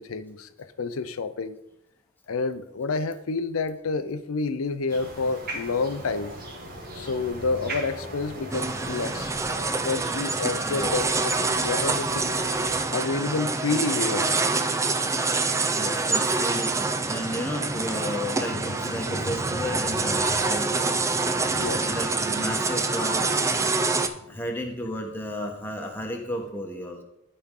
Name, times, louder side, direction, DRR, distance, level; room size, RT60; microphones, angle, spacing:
voice 1, 0.0-1.6 2.3-6.3 6.9-9.3 9.8-12.4 12.9-14.3 15.2-15.5 21.6-22.1 22.9-23.0, left 4 dB, 85° left, 12 dB, 0.6 m, -29 dB
sound 1, 4.9-12.8, right 1 dB, 45° right, 1.6 m, -39 dB
sound 2, 8.5-24.1, right 3 dB, 15° right, 0.4 m, -26 dB
voice 2, 10.7-11.0 15.7-20.9 21.8-23.3 24.3-27.0, equal, 10° left, 2 dB, 1.0 m, -33 dB
sound 3, 16.7-26.5, left 1 dB, 55° left, 0.8 m, -42 dB
13.0 x 4.3 x 3.7 m, 0.87 s
head